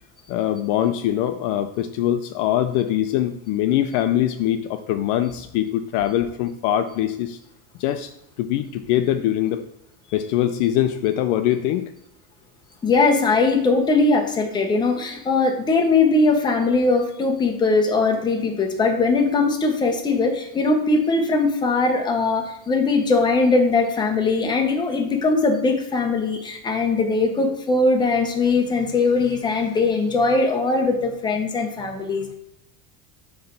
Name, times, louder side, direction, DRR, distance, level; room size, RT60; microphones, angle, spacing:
voice 1, 0.3-7.4 7.8-8.1 8.4-9.6 10.1-11.9, left 12 dB, 50° left, 10 dB, 0.5 m, -23 dB
voice 2, 12.8-32.3, left 3 dB, 10° left, 3 dB, 0.7 m, -20 dB
7.8 x 3.3 x 5.7 m, 0.81 s
cardioid pair, 165°, 47 cm